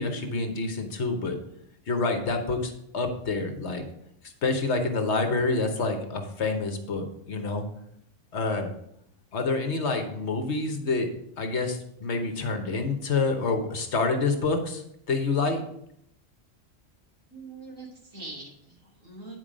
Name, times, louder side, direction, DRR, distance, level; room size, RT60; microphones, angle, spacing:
voice 1, 0.0-1.4 1.9-3.8 4.4-7.6 8.3-8.7 9.3-11.1 11.4-15.6, left 3 dB, 60° left, 5 dB, 1.3 m, -27 dB
voice 2, 17.3-19.4, right 3 dB, 80° right, -3 dB, 2.8 m, -43 dB
9.2 x 4.6 x 5.0 m, 0.74 s
omnidirectional pair, 1.3 m